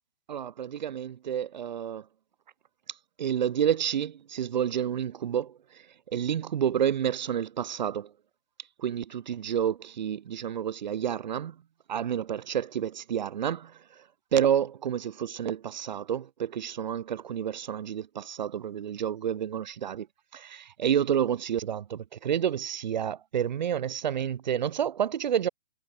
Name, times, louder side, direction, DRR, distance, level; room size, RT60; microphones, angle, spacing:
voice 1, 0.3-2.1 3.2-8.1 8.8-11.6 11.9-14.0 14.3-20.1 20.3-25.5, right 9 dB, 50° right, 4.2 m, -29 dB
hypercardioid pair, 170°, 29 cm